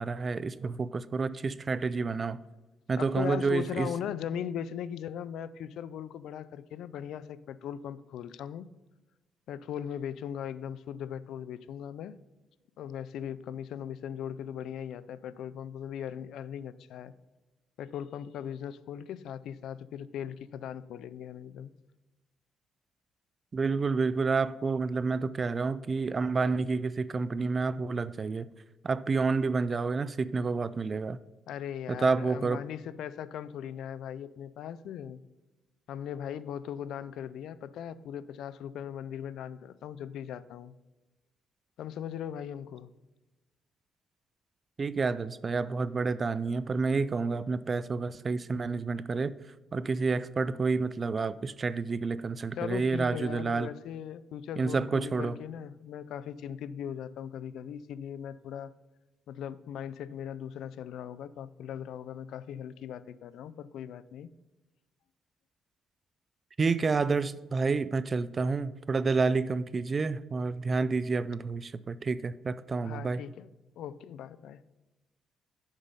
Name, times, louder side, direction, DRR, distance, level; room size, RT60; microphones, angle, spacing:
voice 1, 0.0-2.4 2.9-3.9 23.5-28.5 28.8-31.2 31.9-32.6 44.8-49.3 49.7-53.7 54.6-55.4 66.6-73.2, right 4 dB, 35° right, 16 dB, 0.3 m, -29 dB
voice 2, 3.0-8.7 9.5-12.1 12.8-17.1 17.8-21.7 31.5-35.2 35.9-40.7 41.8-42.9 52.6-58.7 59.3-64.3 72.8-73.5 73.8-74.6, left 9 dB, 80° left, 16 dB, 0.3 m, -39 dB
7.2 x 5.4 x 5.2 m, 1.1 s
cardioid pair, 105°, 0 cm